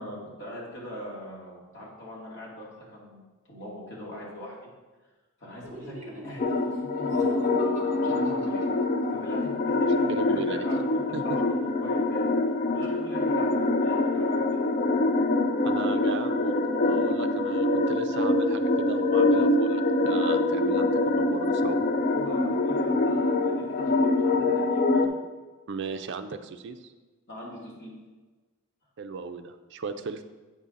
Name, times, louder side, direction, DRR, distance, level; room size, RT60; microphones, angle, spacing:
voice 1, 0.0-3.2 3.5-4.7 5.4-8.6 9.1-12.2 12.7-14.6 22.1-25.1 27.3-27.9, equal, 55° left, -5 dB, 2.2 m, -42 dB
Laughter, 5.6-9.3, equal, 35° right, 0.8 m, -42 dB
sound 1, 6.4-25.1, left 2 dB, 35° left, 0.4 m, -25 dB
voice 2, 10.1-10.7 11.1-11.4 15.6-21.8 25.7-26.9 29.0-30.2, right 4 dB, 50° right, 8 dB, 0.4 m, -36 dB
8.1 x 5.5 x 3.7 m, 1.3 s
head